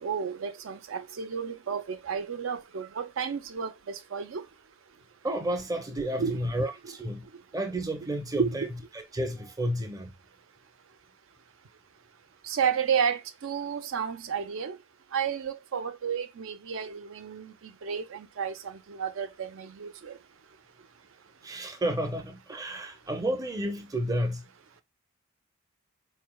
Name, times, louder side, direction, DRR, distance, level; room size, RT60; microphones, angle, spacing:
voice 1, 0.0-4.5 6.1-6.4 6.8-6.9 8.4-8.5 12.4-14.8 15.1-20.2, right 7 dB, 70° right, 0.5 m, -32 dB
voice 2, 5.2-7.3 7.5-8.7 8.9-10.1 21.4-24.4, right 1 dB, 15° right, 0.6 m, -31 dB
4.5 x 3.2 x 2.2 m
head